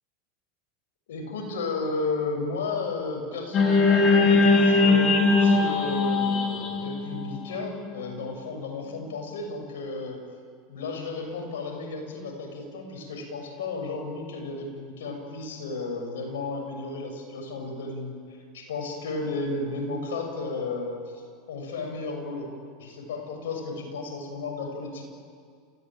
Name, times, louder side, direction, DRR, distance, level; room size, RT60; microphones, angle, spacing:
voice 1, 1.1-10.2 10.7-18.1 18.5-21.2 21.5-22.5 22.8-25.0, left 3 dB, 85° left, 2 dB, 6.9 m, -33 dB
sound 1, 3.5-7.9, left 3 dB, 35° left, 5.9 m, -20 dB
30.0 x 16.5 x 9.0 m, 2.1 s
supercardioid pair, 110°, 0 cm